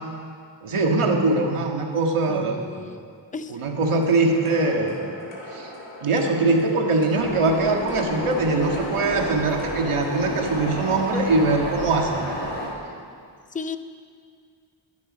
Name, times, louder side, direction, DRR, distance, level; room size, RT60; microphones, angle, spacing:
voice 1, 0.6-2.8 3.5-5.1 5.5-5.7 6.0-12.5, right 3 dB, 85° right, 1 dB, 1.9 m, -22 dB
voice 2, 2.3-3.0 3.3-3.5 13.5-13.8, left 5 dB, 15° left, 10 dB, 0.5 m, -33 dB
sound 1, 3.8-10.7, left 1 dB, 80° left, 3.5 m, -41 dB
sound 2, 7.1-12.7, left 1 dB, 65° left, 5.0 m, -31 dB
21.5 x 10.5 x 5.3 m, 2.2 s
wide cardioid pair, 170°, 49 cm